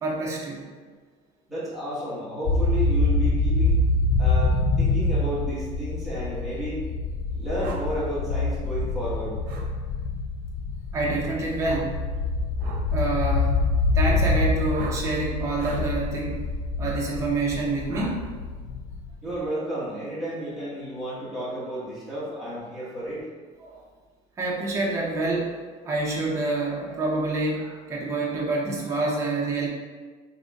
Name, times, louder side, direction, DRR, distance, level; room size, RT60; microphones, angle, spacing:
voice 1, 0.0-0.6 10.9-12.0 12.9-13.6 13.9-16.4 16.8-18.2 23.6-23.8 24.4-25.5 25.8-29.7, right 2 dB, 20° right, -4 dB, 0.7 m, -27 dB
voice 2, 1.5-3.8 4.2-6.8 7.3-9.3 19.2-23.2, right 1 dB, ahead, -11 dB, 1.4 m, -32 dB
sound 1, 2.5-19.3, left 3 dB, 55° left, 0.4 m, -25 dB
sound 2, 7.6-7.8 9.5-9.7 11.6-11.9 12.6-12.8 14.7-15.0 15.5-15.9 16.8-17.0 17.9-18.2, right 3 dB, 75° right, 0.7 m, -37 dB
3.9 x 3.9 x 2.4 m, 1.4 s
cardioid pair, 155°, 14 cm